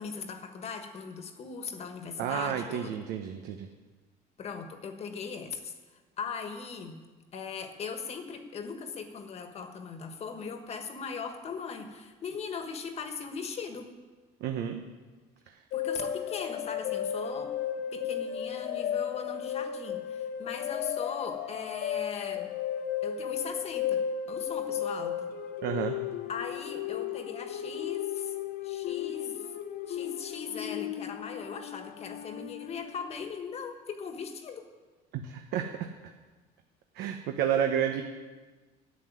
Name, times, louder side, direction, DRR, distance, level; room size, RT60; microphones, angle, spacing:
voice 1, 0.0-3.0 4.4-5.7 6.2-7.0 7.3-13.9 15.7-17.5 17.9-22.5 23.0-25.3 26.3-28.3 28.6-29.4 29.9-34.6, left 5 dB, 40° left, 6 dB, 1.4 m, -39 dB
voice 2, 2.2-3.7 14.4-14.8 15.5-15.6 25.6-26.0 35.1-35.7 36.9-38.0, right 9 dB, 75° right, 5 dB, 1.0 m, -30 dB
sound 1, 15.7-33.1, left 9 dB, 65° left, 0.9 m, -34 dB
11.5 x 8.0 x 9.4 m, 1.3 s
cardioid pair, 140°, 17 cm